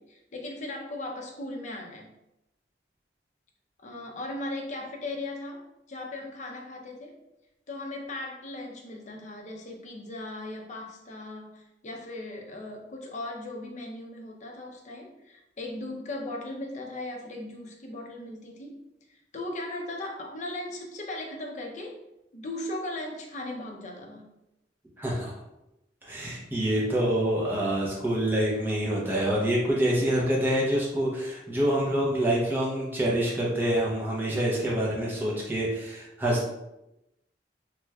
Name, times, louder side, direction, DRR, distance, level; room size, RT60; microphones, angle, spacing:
voice 1, 0.0-2.1 3.8-7.1 7.7-18.8 19.1-22.0 22.3-24.3, left 2 dB, 40° left, 1 dB, 0.5 m, -38 dB
voice 2, 25.0-25.3 26.0-36.5, right 1 dB, 10° right, -5 dB, 0.6 m, -26 dB
3.2 x 2.9 x 2.3 m, 0.91 s
head